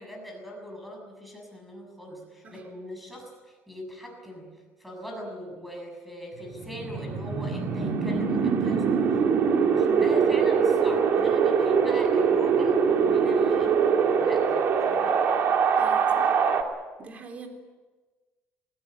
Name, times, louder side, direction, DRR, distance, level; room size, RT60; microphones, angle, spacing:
voice 1, 0.0-9.3 9.6-13.8 14.2-14.6 14.9-15.2, equal, ahead, 2 dB, 6.9 m, -41 dB
Wind, 6.4-16.6, right 6 dB, 55° right, 2.5 m, -23 dB
voice 2, 15.8-16.4 17.0-17.5, right 4 dB, 35° right, 4 dB, 3.5 m, -44 dB
21.5 x 20.0 x 8.8 m, 1.3 s
cardioid pair, 140°, 4 cm